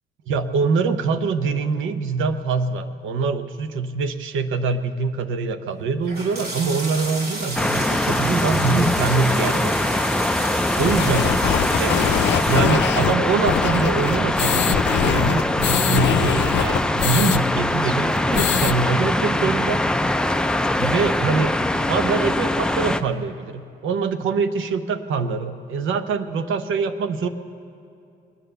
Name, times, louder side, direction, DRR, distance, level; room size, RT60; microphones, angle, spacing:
voice 1, 0.3-9.7 10.8-11.3 11.8-12.0 12.5-19.8 20.8-21.6 21.9-27.3, right 4 dB, 80° right, 10 dB, 0.8 m, -24 dB
sound 1, 6.1-12.6, right 2 dB, 50° right, 2.5 m, -32 dB
sound 2, 7.6-23.0, left 1 dB, 5° left, 0.5 m, -22 dB
sound 3, 10.8-17.4 17.7-17.8 18.1-18.7, left 10 dB, 65° left, 0.5 m, -23 dB
21.0 x 9.0 x 6.7 m, 2.6 s
cardioid pair, 90°, 20 cm